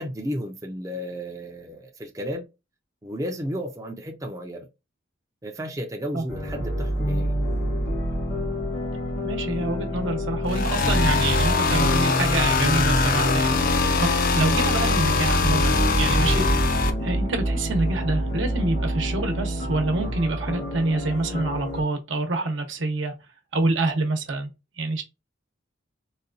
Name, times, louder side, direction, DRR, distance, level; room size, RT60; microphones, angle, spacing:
voice 1, 0.0-2.5 3.0-4.7 5.4-7.3, equal, 20° right, 0.5 m, -33 dB
sound 1, 6.3-21.8, equal, 75° left, 1.9 m, -28 dB
voice 2, 9.2-23.1 23.5-24.5 24.8-25.0, right 2 dB, 75° right, 0.9 m, -27 dB
sound 2, 10.5-16.9, left 3 dB, 50° left, 0.5 m, -22 dB
4.0 x 2.3 x 2.5 m
head